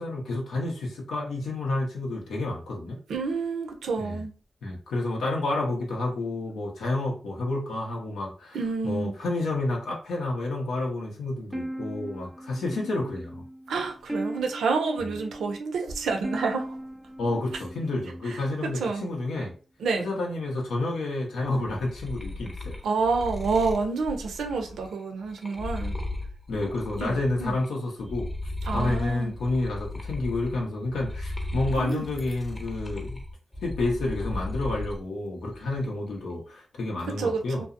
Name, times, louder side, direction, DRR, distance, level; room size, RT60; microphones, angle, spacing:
voice 1, 0.0-3.0 4.0-4.2 4.6-8.6 8.8-13.4 17.2-19.5 20.0-22.8 26.5-28.3 28.7-33.2 33.6-37.7, left 2 dB, 85° left, 0.7 m, -30 dB
voice 2, 3.1-4.3 8.5-9.1 13.7-16.8 18.3-18.4 18.8-19.0 19.8-20.0 22.8-25.9 27.0-27.5 28.7-29.3 31.8-32.0 37.1-37.7, right 4 dB, 85° right, 0.5 m, -28 dB
sound 1, 11.5-18.6, right 1 dB, 5° right, 0.3 m, -38 dB
sound 2, 21.4-27.7 28.0-35.0 35.4-36.1, left 2 dB, 15° left, 0.8 m, -36 dB
2.6 x 2.0 x 2.4 m
supercardioid pair, 45°, 0 cm